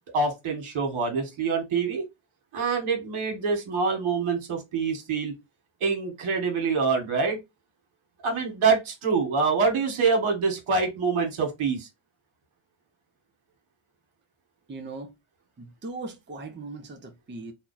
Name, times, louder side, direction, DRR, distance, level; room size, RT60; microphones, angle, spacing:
voice 1, 0.1-2.1 2.5-5.3 5.8-7.4 8.2-11.9, right 4 dB, 75° right, 1.4 m, -25 dB
voice 2, 14.7-15.1 15.6-17.5, right 3 dB, 25° right, 0.6 m, -39 dB
2.7 x 2.3 x 3.9 m
cardioid pair, 85°, 49 cm